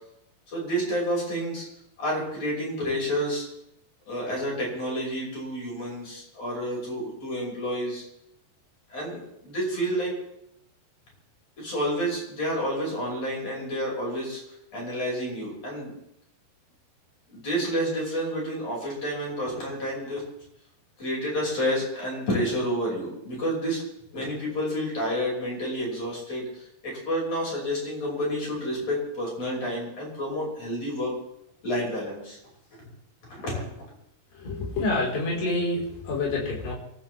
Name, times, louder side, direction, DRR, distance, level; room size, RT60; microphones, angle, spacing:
voice 1, 0.5-1.7 2.0-3.5 4.1-8.0 8.9-10.2 11.6-14.4 14.7-15.9 17.3-20.2 21.0-23.8 24.1-31.2 31.6-32.4 33.3-33.7, equal, 40° left, -3 dB, 6.9 m, -29 dB
voice 2, 34.3-36.7, left 2 dB, 80° left, -3 dB, 6.6 m, -27 dB
29.0 x 13.0 x 3.5 m, 0.80 s
omnidirectional pair, 4.7 m